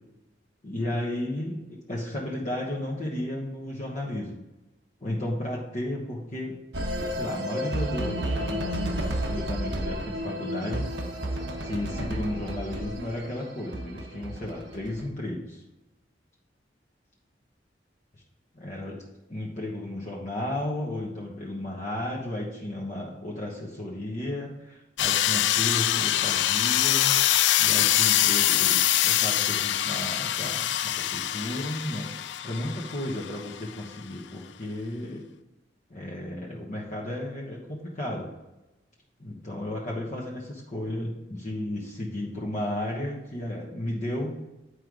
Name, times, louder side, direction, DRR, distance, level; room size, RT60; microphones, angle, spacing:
voice 1, 0.6-4.4 5.0-6.5 7.0-10.9 11.6-15.6 18.5-19.0 19.3-27.2 27.6-35.2 35.9-38.3 39.2-44.4, left 1 dB, 45° left, -3 dB, 1.2 m, -33 dB
sound 1, 6.7-15.0, equal, 80° right, 1.0 m, -32 dB
sound 2, 25.0-33.6, left 12 dB, 75° left, 0.4 m, -24 dB
9.9 x 4.8 x 3.8 m, 1.0 s
head